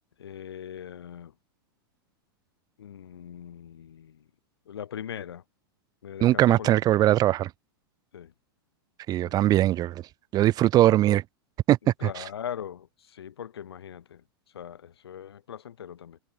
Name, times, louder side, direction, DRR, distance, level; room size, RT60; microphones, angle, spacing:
voice 1, 0.2-1.3 2.8-4.2 4.7-5.4 6.0-7.0 8.1-8.3 9.2-9.4 12.0-14.2 14.5-16.2, left 9 dB, 85° left, 1.8 m, -40 dB
voice 2, 6.2-7.5 9.1-10.0 10.3-11.2 11.7-11.8 12.2-12.3, right 14 dB, 30° right, 0.5 m, -21 dB
hypercardioid pair, 115°, 13 cm